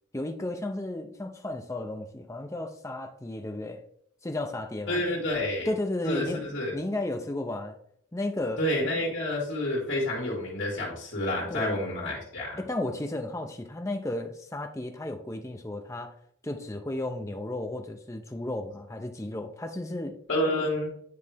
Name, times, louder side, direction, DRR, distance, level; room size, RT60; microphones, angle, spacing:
voice 1, 0.1-3.8 4.2-5.0 5.7-7.8 8.1-8.6 11.5-11.8 12.6-16.1 16.4-20.2, left 1 dB, 15° left, 5 dB, 0.5 m, -33 dB
voice 2, 4.9-5.7 6.0-6.8 8.6-12.6 20.3-20.9, left 1 dB, 60° left, -4 dB, 1.9 m, -29 dB
9.5 x 3.2 x 3.5 m, 0.68 s
head